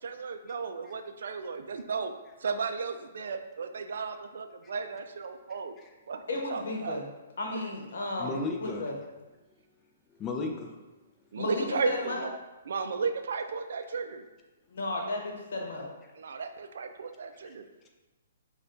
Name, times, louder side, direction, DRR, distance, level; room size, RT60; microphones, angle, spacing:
voice 1, 0.0-5.7 6.1-7.0 11.3-12.3 12.7-14.3 16.2-17.7, right 5 dB, 70° right, 7 dB, 0.3 m, -34 dB
voice 2, 6.3-7.0 7.4-8.3 8.6-8.9 11.4-12.3 14.7-15.9, left 2 dB, 70° left, 0 dB, 0.9 m, -33 dB
voice 3, 8.2-8.8 10.2-10.8, left 3 dB, 20° left, 1 dB, 0.5 m, -33 dB
6.2 x 2.3 x 2.5 m, 1.1 s
hypercardioid pair, 140°, 0 cm